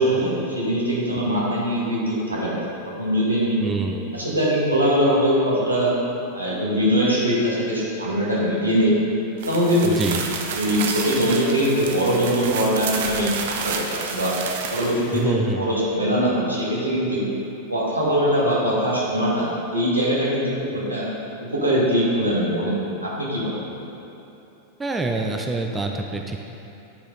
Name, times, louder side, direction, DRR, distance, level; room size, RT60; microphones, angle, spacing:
voice 1, 0.0-3.6 4.1-5.9 6.3-8.9 9.4-10.0 10.5-13.3 13.6-14.3 14.7-17.3 17.7-21.1 21.4-23.6, equal, 85° right, -6 dB, 1.8 m, -22 dB
voice 2, 3.6-4.1 9.8-10.2 15.1-15.6 24.8-26.4, right 3 dB, 15° right, 2 dB, 0.5 m, -26 dB
sound 1, 9.4-15.2, right 5 dB, 55° right, 0.7 m, -30 dB
9.8 x 5.0 x 4.0 m, 2.9 s
figure-of-eight pair, 90°, 0 cm